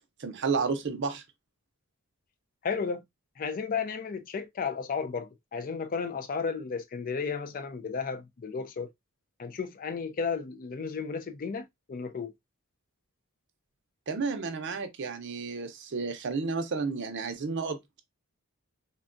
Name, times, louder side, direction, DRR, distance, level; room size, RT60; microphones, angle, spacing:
voice 1, 0.2-1.2 14.1-18.0, right 4 dB, 55° right, 0.6 m, -32 dB
voice 2, 2.6-3.0 3.4-8.9 9.4-12.3, left 5 dB, 40° left, 0.3 m, -33 dB
3.5 x 2.2 x 2.5 m
head